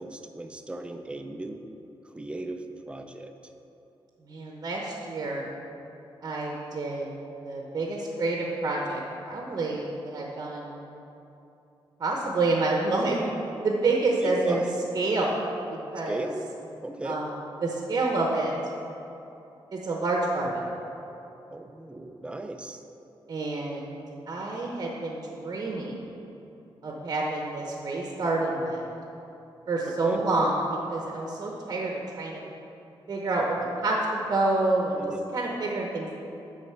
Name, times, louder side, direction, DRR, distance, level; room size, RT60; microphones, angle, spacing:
voice 1, 0.0-1.6 2.1-3.3 14.2-14.8 16.1-16.4 16.8-17.2 21.5-22.8 29.8-30.2 35.0-35.3, right 2 dB, 10° right, 6 dB, 0.4 m, -37 dB
voice 2, 4.2-5.5 6.2-7.1 7.4-10.8 12.0-13.2 13.6-14.6 14.9-15.4 15.7-16.3 17.0-17.3 17.6-18.5 19.7-20.6 23.3-24.0 24.3-26.1 26.8-28.9 29.7-30.5 30.9-32.4 33.1-35.0 35.3-36.1, right 2 dB, 40° right, -1 dB, 0.8 m, -28 dB
9.9 x 4.0 x 6.6 m, 2.9 s
wide cardioid pair, 180°, 9 cm